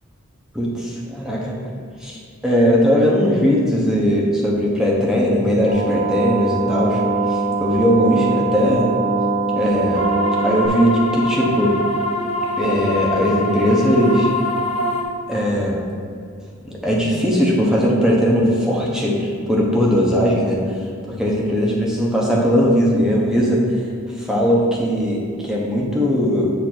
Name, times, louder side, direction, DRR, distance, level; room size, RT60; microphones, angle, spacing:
voice 1, 0.5-1.5 2.0-2.2 2.4-7.0 7.3-8.9 9.6-10.0 10.4-11.8 12.6-14.3 15.3-15.8 16.6-20.6 21.1-23.8 24.2-26.5, equal, 5° right, -4 dB, 0.9 m, -19 dB
sound 1, 5.7-10.7, right 3 dB, 35° right, 0.6 m, -22 dB
sound 2, 9.9-15.0, left 1 dB, 30° left, 0.7 m, -24 dB
8.6 x 2.9 x 6.0 m, 2.3 s
head